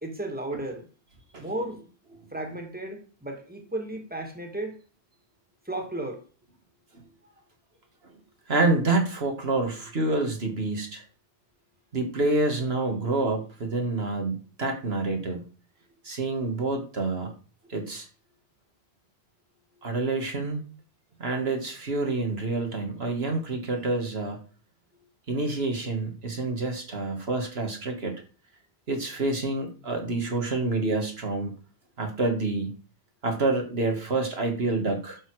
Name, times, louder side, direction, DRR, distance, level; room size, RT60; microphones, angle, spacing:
voice 1, 0.0-0.9 1.4-1.9 2.3-4.8 5.7-6.2, right 1 dB, 10° right, 4 dB, 2.2 m, -34 dB
voice 2, 8.5-11.0 11.9-15.4 16.0-17.3 17.7-18.1 19.8-20.6 21.2-24.4 25.3-28.1 28.9-31.5 32.0-32.7 33.2-35.2, right 2 dB, 70° right, 3 dB, 2.0 m, -27 dB
11.0 x 6.8 x 4.8 m, 0.38 s
omnidirectional pair, 1.1 m